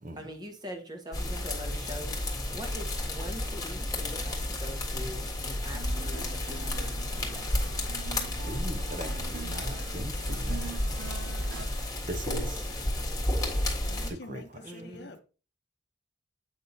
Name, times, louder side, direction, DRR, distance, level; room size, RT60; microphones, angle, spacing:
voice 1, 0.2-2.2 2.5-7.4 14.6-15.2, equal, 20° right, 1.2 m, -43 dB
sound 1, 1.1-14.1, left 1 dB, 20° left, 1.5 m, -32 dB
sound 2, 5.7-11.6, right 6 dB, 70° right, 0.6 m, -45 dB
voice 2, 8.5-10.8 11.6-11.7 12.1-12.7 14.1-14.4, right 1 dB, 40° right, 0.8 m, -39 dB
voice 3, 13.8-15.2, left 2 dB, 55° left, 0.8 m, -46 dB
8.0 x 5.5 x 2.7 m
head